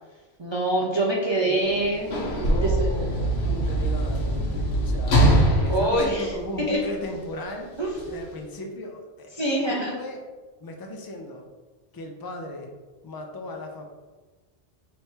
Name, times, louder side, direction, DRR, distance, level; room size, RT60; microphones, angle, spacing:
voice 1, 0.4-2.7 5.7-6.3 6.7-6.8 7.8-8.2 9.3-9.9, right 1 dB, 35° right, -3 dB, 0.4 m, -25 dB
Sliding door / Slam, 1.7-7.1 8.0-8.1, right 1 dB, 70° left, 1.2 m, -23 dB
voice 2, 2.3-5.2 5.6-7.7 8.1-10.2 10.6-11.4 11.9-12.7 13.0-13.8, left 1 dB, 35° left, 2 dB, 0.3 m, -36 dB
3.3 x 3.1 x 4.4 m, 1.3 s
omnidirectional pair, 1.2 m